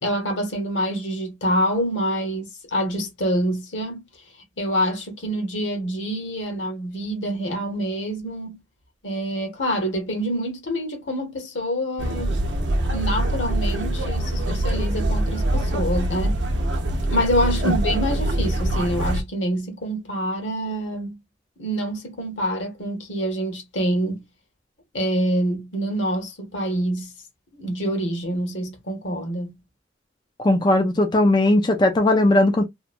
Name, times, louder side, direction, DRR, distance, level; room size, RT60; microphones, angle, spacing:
voice 1, 0.0-4.0 4.6-8.6 9.0-12.4 12.9-16.4 17.1-21.2 21.6-24.2 24.9-27.1 27.5-29.5, equal, 80° left, 1.1 m, -26 dB
sound 1, 12.0-19.2, right 1 dB, 75° right, 0.6 m, -24 dB
voice 2, 30.4-32.6, left 1 dB, 25° left, 0.3 m, -18 dB
2.9 x 2.2 x 2.4 m
head